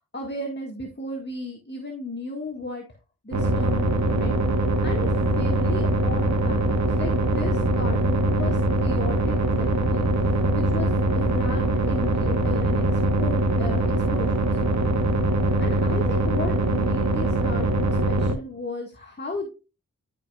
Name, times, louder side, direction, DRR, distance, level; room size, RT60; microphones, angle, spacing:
voice 1, 0.1-2.8 3.2-4.4 4.8-14.6 15.6-19.5, left 2 dB, 30° left, 1 dB, 1.7 m, -35 dB
sound 1, 3.3-18.3, right 2 dB, 50° right, 1.3 m, -22 dB
11.5 x 5.1 x 2.4 m, 0.31 s
cardioid pair, 60°, 35 cm